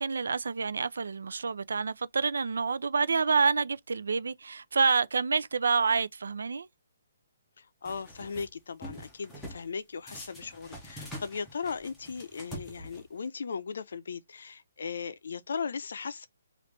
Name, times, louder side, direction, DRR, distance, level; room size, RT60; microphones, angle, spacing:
voice 1, 0.0-6.7, right 5 dB, 80° right, 0.4 m, -28 dB
voice 2, 7.6-16.3, left 5 dB, 60° left, 0.5 m, -37 dB
sound 1, 7.8-8.5 8.8-9.6 10.1-13.3, equal, 5° left, 0.7 m, -45 dB
3.0 x 2.5 x 3.3 m
hypercardioid pair, 175°, 0 cm